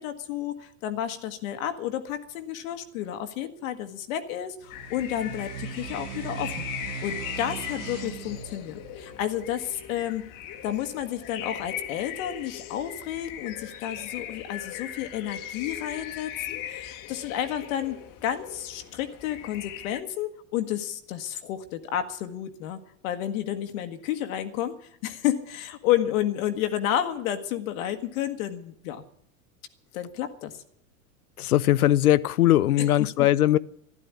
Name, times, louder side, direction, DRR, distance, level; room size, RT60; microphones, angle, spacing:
voice 1, 0.0-10.3 10.6-22.8 23.0-29.0 29.9-30.6 32.8-33.3, left 11 dB, 65° left, 1.5 m, -31 dB
sound 1, 4.6-9.9, right 8 dB, 75° right, 1.0 m, -40 dB
sound 2, 4.7-20.0, left 10 dB, 45° left, 1.4 m, -39 dB
voice 2, 31.4-33.6, left 13 dB, 85° left, 0.7 m, -20 dB
12.0 x 11.5 x 9.6 m
hypercardioid pair, 95°, 43 cm